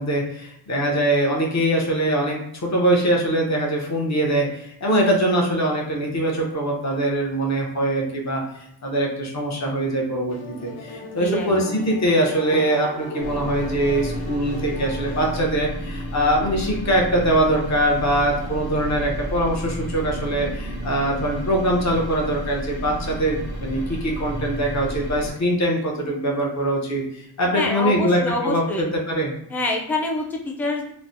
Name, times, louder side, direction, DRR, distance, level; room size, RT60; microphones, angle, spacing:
voice 1, 0.0-8.4 8.8-10.4 10.6-29.3, right 1 dB, 35° left, -1 dB, 0.7 m, -22 dB
sound 1, 10.3-15.4, left 1 dB, 85° left, 0.6 m, -36 dB
voice 2, 11.2-11.5 27.5-28.8 29.5-30.9, left 2 dB, 5° left, 0 dB, 0.4 m, -26 dB
sound 2, 13.2-25.3, right 1 dB, 70° left, 1.1 m, -31 dB
3.1 x 2.1 x 2.6 m, 0.73 s
cardioid pair, 65°, 47 cm